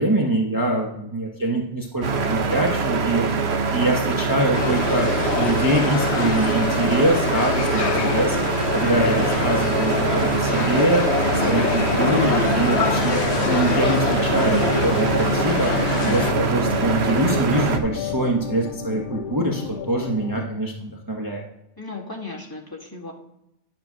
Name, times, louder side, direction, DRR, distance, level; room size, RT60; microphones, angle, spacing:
voice 1, 0.0-3.3 3.7-8.4 8.7-13.2 13.4-21.4, right 1 dB, 20° right, -1 dB, 1.1 m, -24 dB
sound 1, 2.0-17.8, right 4 dB, 70° right, 1.2 m, -23 dB
sound 2, 4.5-16.3, left 8 dB, 85° left, 0.9 m, -26 dB
voice 2, 7.8-8.3 12.1-12.8 16.0-16.4 21.8-23.1, left 4 dB, 20° left, -3 dB, 2.0 m, -35 dB
sound 3, 11.2-20.5, left 7 dB, 55° left, 0.8 m, -32 dB
11.0 x 4.5 x 6.1 m, 0.82 s
omnidirectional pair, 1.1 m